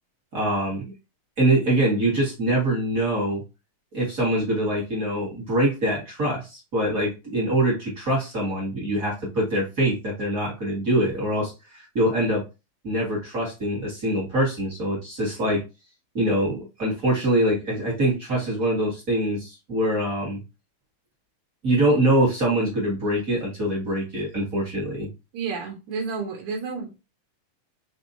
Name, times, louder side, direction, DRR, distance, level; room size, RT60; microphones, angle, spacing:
voice 1, 0.3-0.9 1.4-3.4 3.9-12.4 12.8-15.6 16.1-20.4 21.6-25.1, right 1 dB, 35° right, -4 dB, 1.4 m, -24 dB
voice 2, 25.3-27.0, right 5 dB, 70° right, -1 dB, 2.2 m, -31 dB
5.3 x 3.3 x 2.6 m, 0.27 s
omnidirectional pair, 4.0 m